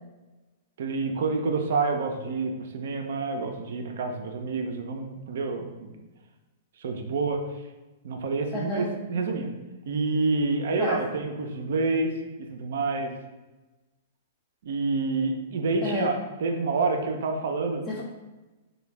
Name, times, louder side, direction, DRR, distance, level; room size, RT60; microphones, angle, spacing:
voice 1, 0.8-6.0 6.8-7.4 8.0-9.5 9.9-12.1 12.5-13.1 14.6-17.8, right 3 dB, 65° right, 4 dB, 0.4 m, -28 dB
voice 2, 8.5-8.9 10.8-11.0 15.8-16.2 17.9-18.0, left 3 dB, 25° left, -4 dB, 0.4 m, -30 dB
3.2 x 2.2 x 3.2 m, 1.1 s
figure-of-eight pair, 110°, 0 cm